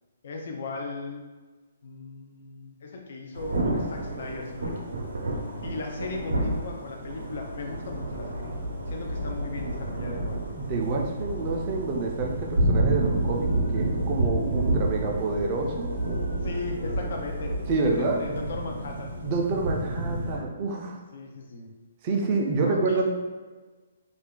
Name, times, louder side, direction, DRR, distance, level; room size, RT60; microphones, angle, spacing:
voice 1, 0.2-1.2 1.8-5.0 5.6-8.5 8.9-10.4 16.4-17.5 17.8-19.1 21.1-21.7 22.6-23.0, left 3 dB, 60° left, 1 dB, 0.5 m, -37 dB
Thunder / Rain, 3.3-20.4, right 1 dB, 85° right, 0.6 m, -30 dB
voice 2, 10.6-16.0 17.7-18.2 19.2-21.0 22.0-23.0, right 3 dB, 35° right, 1 dB, 0.5 m, -27 dB
2.5 x 2.3 x 3.6 m, 1.3 s
hypercardioid pair, 150°, 0 cm